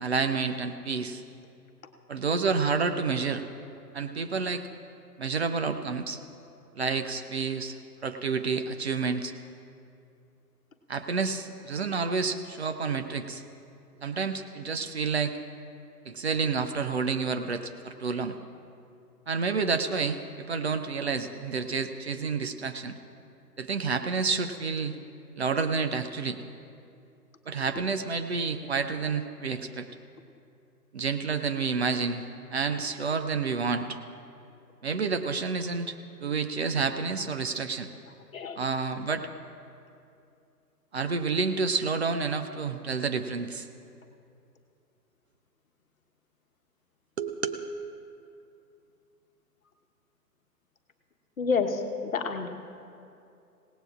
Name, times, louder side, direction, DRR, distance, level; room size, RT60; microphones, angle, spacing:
voice 1, 0.0-1.2 2.1-3.4 3.9-4.6 5.2-6.2 6.8-9.3 10.9-13.4 14.0-15.4 16.1-18.4 19.3-23.0 23.6-25.0 25.4-26.4 27.5-29.9 30.9-32.2 32.5-34.0 34.8-37.9 38.5-39.3 40.9-43.7 47.2-47.6, right 5 dB, 40° right, 7 dB, 0.6 m, -29 dB
voice 2, 51.4-52.5, left 5 dB, 55° left, 5 dB, 1.3 m, -28 dB
28.0 x 17.5 x 2.5 m, 2.6 s
figure-of-eight pair, 130°, 49 cm